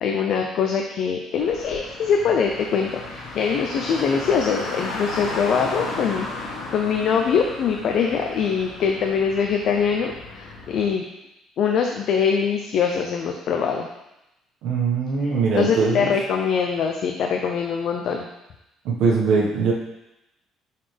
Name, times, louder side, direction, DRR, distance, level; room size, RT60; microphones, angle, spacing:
voice 1, 0.0-11.1 11.6-13.9 15.6-18.3, left 6 dB, 50° left, 3 dB, 0.5 m, -23 dB
Car, 1.4-10.9, left 2 dB, 75° left, 1.6 m, -35 dB
voice 2, 14.6-16.1 18.8-19.7, right 4 dB, 70° right, -3 dB, 1.4 m, -21 dB
7.6 x 4.1 x 3.4 m, 0.91 s
cardioid pair, 175°, 0 cm